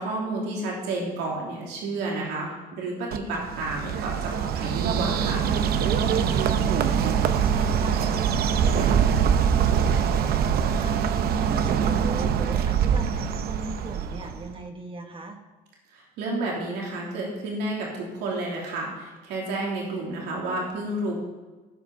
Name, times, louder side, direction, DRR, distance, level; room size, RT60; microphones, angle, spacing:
voice 1, 0.0-5.5 15.9-21.1, right 2 dB, 85° right, -3 dB, 3.0 m, -31 dB
Bird, 3.1-14.5, right 7 dB, 65° right, 0.8 m, -23 dB
voice 2, 6.1-11.0 11.4-15.4, right 3 dB, 30° right, 4 dB, 1.2 m, -38 dB
15.5 x 5.9 x 5.3 m, 1.2 s
cardioid pair, 110°, 17 cm